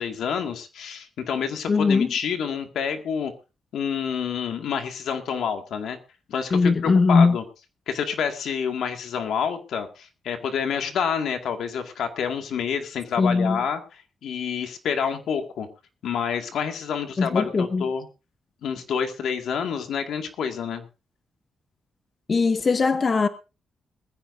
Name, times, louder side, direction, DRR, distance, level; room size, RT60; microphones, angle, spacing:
voice 1, 0.0-3.3 3.7-6.0 6.3-7.4 7.9-15.7 16.0-18.1 18.6-20.9, left 7 dB, 80° left, 2.1 m, -28 dB
voice 2, 1.7-2.1 6.5-7.4 13.2-13.6 17.2-17.9 22.3-23.3, left 4 dB, 40° left, 1.0 m, -20 dB
20.5 x 15.0 x 2.7 m
cardioid pair, 110°, 0 cm